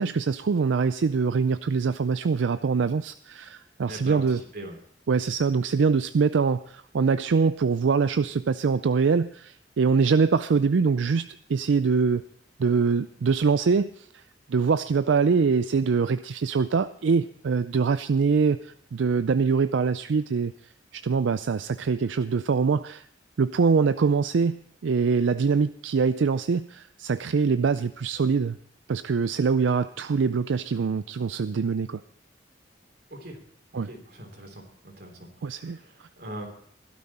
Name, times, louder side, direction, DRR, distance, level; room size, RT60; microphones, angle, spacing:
voice 1, 0.0-4.4 5.1-12.2 12.6-14.2 14.5-23.1 23.4-28.6 28.9-32.0 33.7-33.9 35.4-35.8, right 5 dB, 85° right, 12 dB, 0.4 m, -24 dB
voice 2, 3.8-4.8 5.3-5.5 33.1-33.4 33.7-36.5, right 1 dB, 60° right, 3 dB, 3.2 m, -41 dB
16.5 x 12.0 x 4.2 m, 0.62 s
head